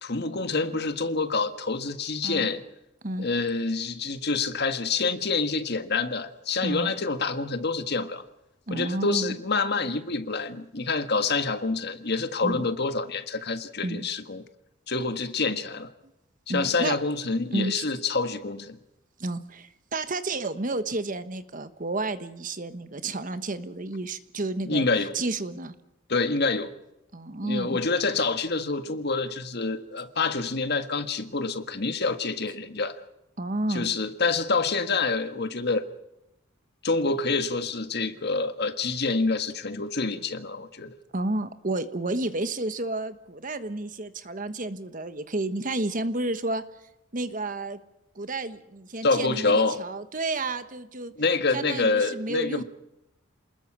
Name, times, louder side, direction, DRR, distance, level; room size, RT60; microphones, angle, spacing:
voice 1, 0.0-2.6 3.2-8.2 8.7-14.4 14.9-15.9 16.5-18.8 24.6-25.1 26.1-26.7 27.4-33.0 33.7-35.9 36.8-40.9 49.0-49.8 51.2-52.6, left 3 dB, 50° left, 9 dB, 1.6 m, -27 dB
voice 2, 6.6-6.9 8.7-9.3 12.4-12.6 13.8-14.1 16.5-17.0 17.5-17.8 19.2-25.7 27.1-27.8 33.4-33.9 41.1-46.6 47.1-47.8 48.1-51.1 51.5-52.6, right 2 dB, 40° right, 11 dB, 1.2 m, -31 dB
28.0 x 20.5 x 6.3 m, 0.88 s
head